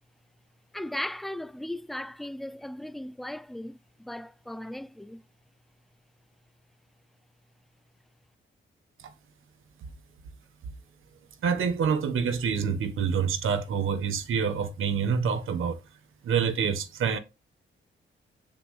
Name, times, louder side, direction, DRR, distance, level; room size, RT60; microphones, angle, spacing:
voice 1, 0.7-5.2, left 1 dB, ahead, 0.5 m, -37 dB
voice 2, 11.4-15.8 16.2-17.2, right 6 dB, 85° right, 1.3 m, -27 dB
7.6 x 6.8 x 3.2 m
cardioid pair, 100°, 20 cm